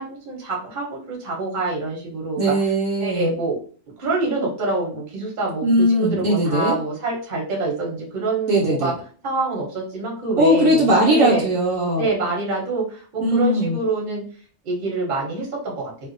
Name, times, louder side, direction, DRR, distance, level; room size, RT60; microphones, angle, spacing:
voice 1, 0.0-2.4 3.0-3.6 4.0-5.7 5.9-8.9 9.2-11.5 12.0-14.2 14.6-15.9, right 3 dB, 40° right, -2 dB, 0.8 m, -26 dB
voice 2, 2.4-3.3 5.6-6.8 8.5-8.9 10.4-12.0 13.2-13.8, equal, 70° right, -1 dB, 0.9 m, -19 dB
2.6 x 2.1 x 2.5 m, 0.43 s
omnidirectional pair, 1.6 m